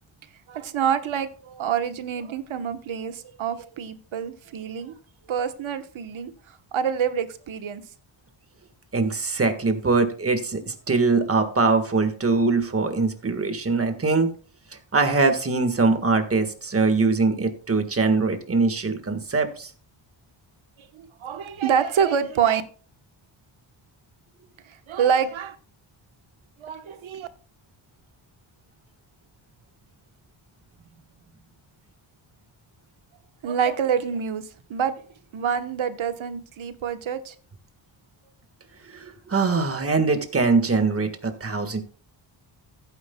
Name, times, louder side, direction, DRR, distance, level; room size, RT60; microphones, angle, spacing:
voice 1, 0.5-4.9 5.3-6.3 6.7-7.8 20.9-22.6 24.9-25.6 26.6-27.3 33.4-34.4 34.7-34.9 35.3-37.3, right 7 dB, 75° right, 1.2 m, -26 dB
voice 2, 8.9-14.3 14.9-19.7 38.9-41.8, right 4 dB, 30° right, 1.6 m, -22 dB
15.5 x 9.5 x 2.3 m
wide cardioid pair, 130°, 48 cm